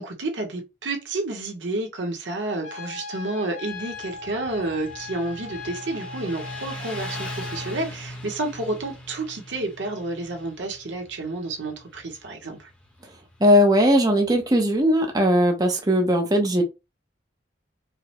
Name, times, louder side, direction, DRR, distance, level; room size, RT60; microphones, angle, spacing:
voice 1, 0.0-12.7, right 2 dB, 85° right, 1.0 m, -30 dB
Trumpet, 2.6-7.9, left 3 dB, 75° left, 2.1 m, -38 dB
Motorcycle, 3.7-14.8, equal, 5° left, 0.8 m, -41 dB
voice 2, 13.4-16.6, equal, 20° right, 0.6 m, -19 dB
4.7 x 2.1 x 2.9 m
head